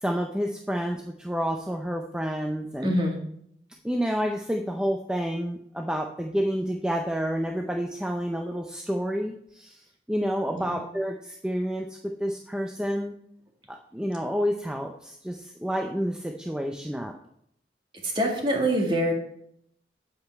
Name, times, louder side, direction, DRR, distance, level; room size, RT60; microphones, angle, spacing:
voice 1, 0.0-2.9 3.8-13.1 13.7-17.1, equal, 5° right, 2 dB, 0.5 m, -29 dB
voice 2, 2.8-3.2 10.5-10.8 18.0-19.1, equal, 30° right, 1 dB, 1.9 m, -25 dB
8.5 x 8.2 x 4.7 m, 0.70 s
head